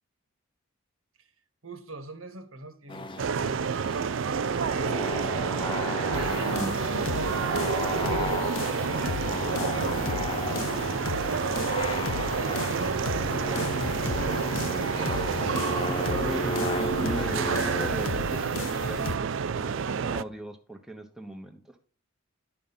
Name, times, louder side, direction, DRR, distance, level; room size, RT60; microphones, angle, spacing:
voice 1, 1.6-4.2 5.9-7.3 7.9-9.1 9.4-14.9, right 2 dB, 80° right, 1.6 m, -41 dB
sound 1, 2.9-17.9, left 2 dB, 25° left, 0.6 m, -35 dB
sound 2, 3.2-20.2, right 6 dB, 65° right, 0.4 m, -29 dB
sound 3, 6.1-19.2, left 6 dB, 70° left, 0.4 m, -37 dB
voice 2, 15.9-21.8, right 1 dB, ahead, 0.9 m, -38 dB
11.0 x 5.1 x 5.6 m
head